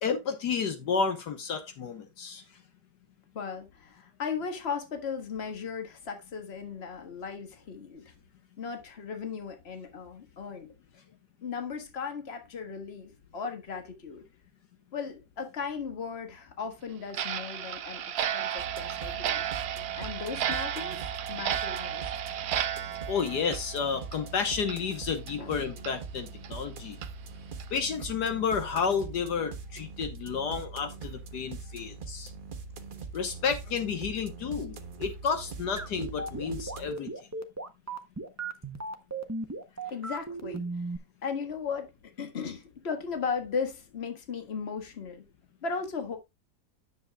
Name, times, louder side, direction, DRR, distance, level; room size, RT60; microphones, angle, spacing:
voice 1, 0.0-2.4 23.1-27.0 27.7-32.3 33.1-37.1, left 6 dB, 70° left, 1.6 m, -31 dB
voice 2, 3.3-8.0 8.6-10.7 11.4-14.2 14.9-19.4 19.9-21.0 21.3-22.1 25.4-25.5 39.9-40.9 41.2-41.9 42.2-45.2 45.6-46.2, left 5 dB, 40° left, 1.7 m, -36 dB
Clock, 17.1-24.3 24.6-24.8 25.3-25.4 25.8-25.9 26.4-26.5 27.0-27.1 27.6-27.8, right 10 dB, 65° right, 1.2 m, -33 dB
sound 1, 18.6-36.9, right 4 dB, 35° right, 1.0 m, -42 dB
sound 2, 35.8-41.0, right 3 dB, 20° right, 0.5 m, -35 dB
10.0 x 7.2 x 2.2 m
omnidirectional pair, 1.9 m